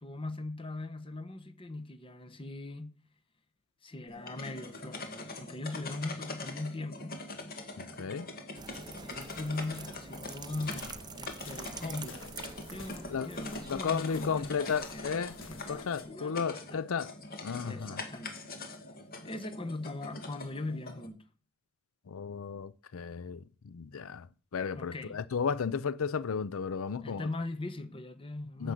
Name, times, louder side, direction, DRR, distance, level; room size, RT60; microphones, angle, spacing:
voice 1, 0.0-3.0 3.8-7.2 9.0-12.2 12.7-16.8 17.6-18.5 19.2-21.3 24.7-25.3 27.0-28.7, left 2 dB, 25° left, 1.1 m, -40 dB
sound 1, 4.1-21.1, left 2 dB, 45° left, 1.9 m, -43 dB
voice 2, 7.8-8.3 13.1-13.3 13.7-15.3 15.7-17.1 17.4-18.0 22.1-23.4 23.7-24.3 24.5-27.3 28.6-28.7, left 6 dB, 80° left, 0.5 m, -34 dB
sound 2, 8.6-13.7, right 5 dB, 20° right, 0.5 m, -46 dB
sound 3, 10.4-16.0, left 3 dB, 60° left, 1.9 m, -50 dB
9.8 x 7.0 x 7.7 m
head